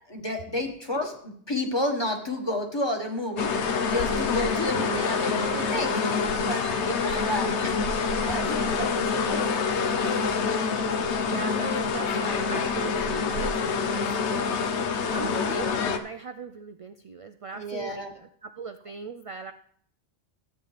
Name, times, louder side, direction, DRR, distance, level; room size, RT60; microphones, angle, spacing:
voice 1, 0.1-3.5 3.8-6.1 6.4-6.7 7.3-7.7 8.2-9.6 10.0-10.3 17.5-18.1, left 1 dB, 25° left, 2 dB, 1.5 m, -31 dB
sound 1, 3.4-16.0, left 5 dB, 85° left, 1.1 m, -26 dB
sound 2, 3.4-8.8, right 3 dB, 85° right, 1.4 m, -43 dB
voice 2, 6.9-7.6 11.2-14.1 15.1-19.5, right 5 dB, 60° right, 6 dB, 0.3 m, -39 dB
13.5 x 8.8 x 3.3 m, 0.62 s
omnidirectional pair, 1.1 m